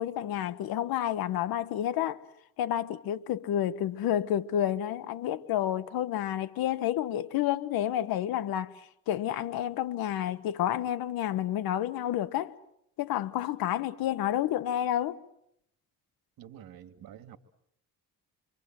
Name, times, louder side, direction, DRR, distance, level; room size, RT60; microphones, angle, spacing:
voice 1, 0.0-2.2 2.6-8.7 9.1-12.6 13.0-15.2, left 11 dB, 85° left, 1.2 m, -30 dB
voice 2, 16.4-17.4, right 10 dB, 80° right, 2.2 m, -48 dB
27.0 x 25.0 x 7.6 m
cardioid pair, 90°, 35 cm